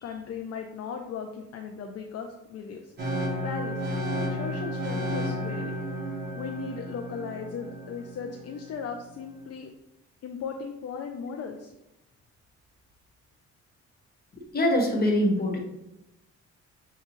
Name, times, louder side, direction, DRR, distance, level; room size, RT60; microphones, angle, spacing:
voice 1, 0.0-2.9 3.4-3.8 4.1-5.7 6.3-9.7 10.2-11.7, left 6 dB, 55° left, 3 dB, 0.5 m, -37 dB
sound 1, 3.0-8.9, equal, 35° right, 1.3 m, -32 dB
voice 2, 14.5-15.6, left 1 dB, 30° left, 0 dB, 1.2 m, -23 dB
6.7 x 2.3 x 3.0 m, 0.90 s
cardioid pair, 90°, 30 cm